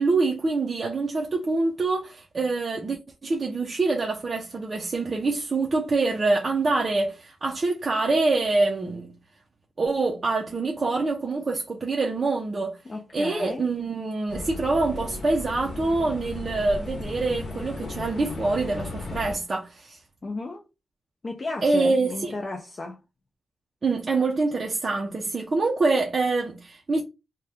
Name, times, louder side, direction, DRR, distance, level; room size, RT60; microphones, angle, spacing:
voice 1, 0.0-9.1 9.8-12.8 13.1-20.0 21.6-22.3 23.8-27.0, right 3 dB, 30° right, 0.5 m, -25 dB
voice 2, 12.9-13.7 20.2-20.6 21.2-23.0, left 3 dB, 30° left, 0.4 m, -34 dB
sound 1, 14.3-19.4, left 2 dB, 55° left, 0.8 m, -35 dB
2.7 x 2.2 x 3.4 m
wide cardioid pair, 165°, 0 cm